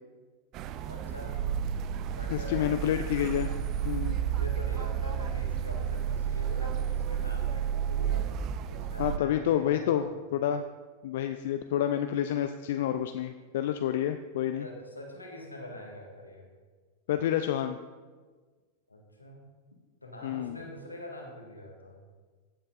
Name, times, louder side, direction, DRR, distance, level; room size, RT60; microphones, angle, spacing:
sound 1, 0.5-9.2, right 8 dB, 35° right, 0.4 m, -31 dB
voice 1, 0.9-1.4 2.1-2.8 4.2-8.3 8.7-10.1 14.6-16.5 18.9-19.4 20.0-22.0, left 1 dB, 85° left, 0 dB, 1.7 m, -44 dB
voice 2, 2.3-3.5 3.8-4.2 9.0-10.0 10.3-10.6 11.0-14.6 17.1-17.8 20.2-20.6, left 10 dB, 55° left, 8 dB, 0.4 m, -29 dB
15.5 x 7.6 x 2.6 m, 1.4 s
figure-of-eight pair, 90°, 0 cm